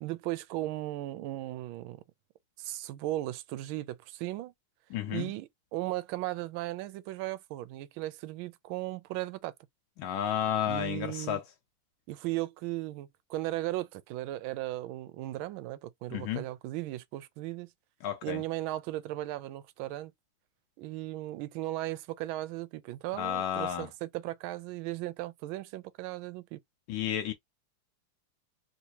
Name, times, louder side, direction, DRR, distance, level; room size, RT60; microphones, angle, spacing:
voice 1, 0.0-2.0 2.6-4.5 5.1-9.5 10.7-11.4 12.1-17.7 18.2-20.1 20.8-26.6, right 16 dB, 75° right, 1.3 m, -36 dB
voice 2, 4.9-5.3 10.0-11.4 16.1-16.4 18.0-18.4 23.2-23.9 26.9-27.3, left 10 dB, 75° left, 1.4 m, -32 dB
3.6 x 2.6 x 2.9 m
omnidirectional pair, 2.3 m